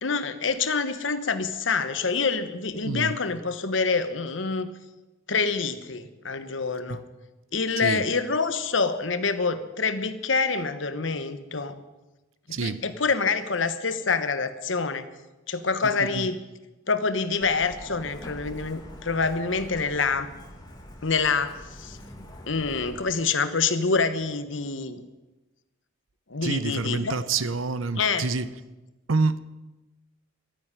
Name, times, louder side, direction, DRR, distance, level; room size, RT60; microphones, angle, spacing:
voice 1, 0.0-4.7 5.3-7.0 7.5-11.8 12.6-15.0 15.5-16.4 16.9-20.3 21.0-22.0 22.5-25.0 26.3-27.2 28.0-28.2, left 4 dB, 70° left, 1.2 m, -26 dB
voice 2, 12.5-12.8 15.8-16.3 26.4-28.5 29.1-29.4, right 3 dB, 90° right, 0.8 m, -27 dB
Truck, 17.4-23.0, equal, 20° left, 2.2 m, -44 dB
12.5 x 10.5 x 9.7 m
head